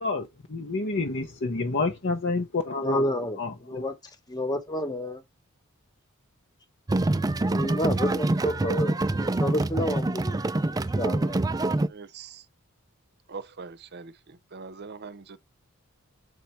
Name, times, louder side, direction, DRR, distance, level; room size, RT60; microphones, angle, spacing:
voice 1, 0.0-3.8, left 3 dB, 55° left, 0.9 m, -29 dB
voice 2, 2.8-4.0 4.3-5.2 7.1-11.4, left 1 dB, 20° left, 1.1 m, -30 dB
sound 1, 6.9-11.9, right 2 dB, 15° right, 0.3 m, -25 dB
voice 3, 11.9-12.4 13.3-15.4, right 4 dB, 50° right, 0.7 m, -42 dB
7.8 x 4.2 x 4.5 m
head